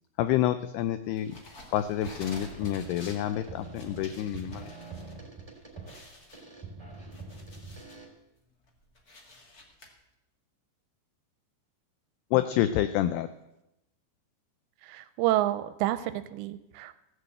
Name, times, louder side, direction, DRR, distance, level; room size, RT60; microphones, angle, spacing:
voice 1, 0.2-1.4 1.7-4.7 12.3-13.3, left 12 dB, 85° left, 11 dB, 2.3 m, -28 dB
sound 1, 1.2-5.1 5.5-5.6 5.8-8.0 8.5-9.9, left 1 dB, 65° left, 0.9 m, -50 dB
sound 2, 1.2-1.5 1.8-8.0, right 4 dB, 10° right, 1.7 m, -44 dB
voice 2, 14.8-16.9, right 14 dB, 80° right, 13 dB, 2.7 m, -29 dB
16.0 x 6.9 x 7.9 m, 0.89 s
omnidirectional pair, 5.3 m